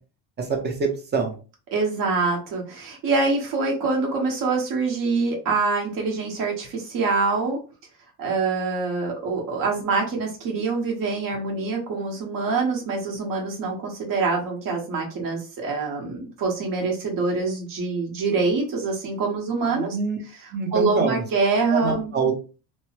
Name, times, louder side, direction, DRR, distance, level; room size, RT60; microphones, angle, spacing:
voice 1, 0.4-1.3 19.7-20.2 20.5-21.2 21.7-22.3, right 5 dB, 25° right, 3 dB, 0.7 m, -25 dB
voice 2, 1.7-7.6 8.2-20.0 20.2-22.1, right 4 dB, 50° right, 0 dB, 1.2 m, -25 dB
3.1 x 2.0 x 2.9 m, 0.34 s
cardioid pair, 130°, 42 cm